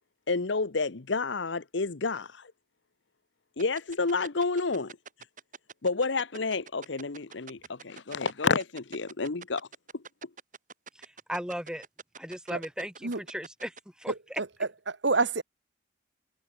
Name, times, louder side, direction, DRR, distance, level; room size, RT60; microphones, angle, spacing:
voice 1, 0.3-2.5 3.6-5.0 5.8-9.7 9.9-10.0, left 4 dB, 70° left, 1.0 m, -30 dB
sound 1, 3.6-13.8, right 5 dB, 40° right, 7.8 m, -45 dB
voice 2, 11.0-11.8 12.2-14.4, equal, 5° right, 3.3 m, -37 dB
voice 3, 14.4-15.4, right 3 dB, 65° right, 1.4 m, -28 dB
head